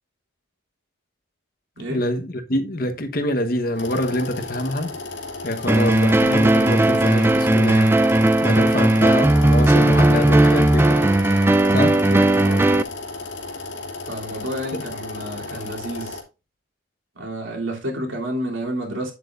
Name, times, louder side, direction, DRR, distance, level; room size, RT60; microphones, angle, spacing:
voice 1, 1.9-5.0 5.4-7.9 8.4-11.2 11.7-12.0 14.8-14.9, left 1 dB, 45° left, 1.2 m, -25 dB
sound 1, 3.7-16.2, left 3 dB, 70° left, 2.4 m, -34 dB
sound 2, 5.7-12.8, right 1 dB, 10° right, 0.3 m, -16 dB
voice 2, 11.8-12.8 14.1-16.2 17.1-19.1, equal, 75° right, 3.2 m, -30 dB
9.1 x 8.0 x 2.5 m
head